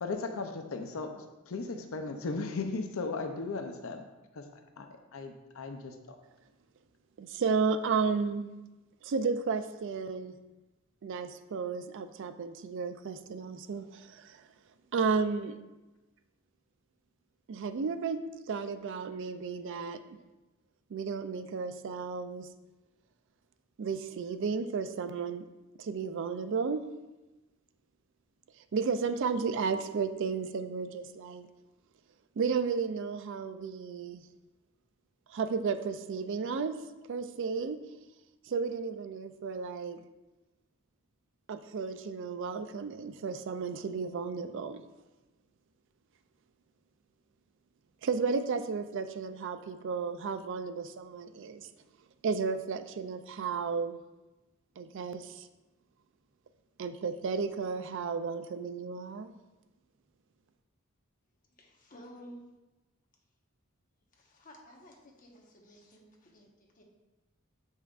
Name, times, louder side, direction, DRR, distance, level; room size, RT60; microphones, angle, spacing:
voice 1, 0.0-4.0 4.3-4.4 4.8-4.9 5.1-6.2, left 3 dB, 75° left, 6 dB, 0.6 m, -36 dB
voice 2, 7.2-8.5 9.0-10.3 11.0-14.4 14.9-15.6 17.5-18.2 18.5-20.0 20.9-22.5 23.8-25.4 25.8-26.8 28.7-31.5 32.4-34.2 35.3-36.8 37.1-37.8 38.5-40.0 41.5-44.8 48.0-51.7 52.2-54.0 54.8-55.5 56.8-59.3, right 5 dB, 60° right, 11 dB, 0.4 m, -33 dB
voice 3, 61.5-62.4 64.1-66.8, equal, 40° left, 0 dB, 1.2 m, -53 dB
7.6 x 5.5 x 2.5 m, 1.1 s
head